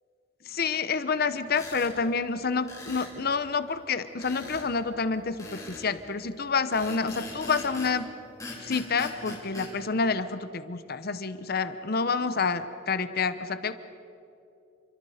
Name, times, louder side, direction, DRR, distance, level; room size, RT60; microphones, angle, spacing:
voice 1, 0.5-8.1 8.6-13.7, left 4 dB, 50° left, 12 dB, 0.9 m, -28 dB
sound 1, 1.5-1.9 2.7-3.1 4.2-4.7 5.4-5.9 6.7-8.0 8.4-9.7, left 2 dB, 15° left, 4.9 m, -40 dB
30.0 x 24.5 x 5.0 m, 2.7 s
head